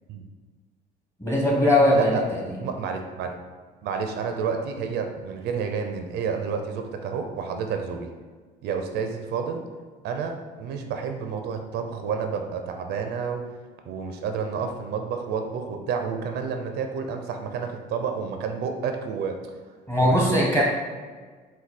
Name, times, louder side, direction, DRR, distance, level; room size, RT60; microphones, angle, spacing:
voice 1, 1.2-2.6 19.9-20.6, left 1 dB, 15° left, -3 dB, 1.3 m, -20 dB
voice 2, 1.9-2.2 2.6-3.4 3.8-8.1 8.6-9.6 10.0-13.4 13.8-19.4 20.0-20.6, right 6 dB, 75° right, 5 dB, 0.5 m, -30 dB
4.6 x 2.3 x 4.1 m, 1.5 s
cardioid pair, 110°, 17 cm